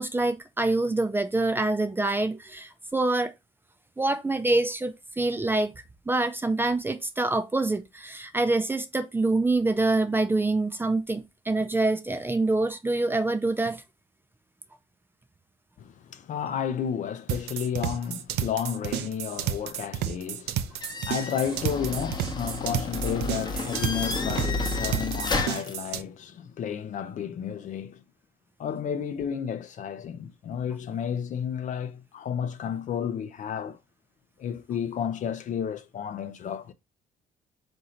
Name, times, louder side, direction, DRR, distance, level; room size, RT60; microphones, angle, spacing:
voice 1, 0.0-3.3 4.0-5.7 6.1-13.8, right 2 dB, 10° right, 0.4 m, -26 dB
voice 2, 15.8-28.0 28.6-33.8 34.4-36.7, left 8 dB, 50° left, 0.5 m, -32 dB
sound 1, 17.3-26.0, right 11 dB, 80° right, 0.5 m, -31 dB
sound 2, 20.8-25.7, left 3 dB, 25° left, 0.8 m, -31 dB
3.8 x 2.7 x 4.2 m
cardioid pair, 110°, 17 cm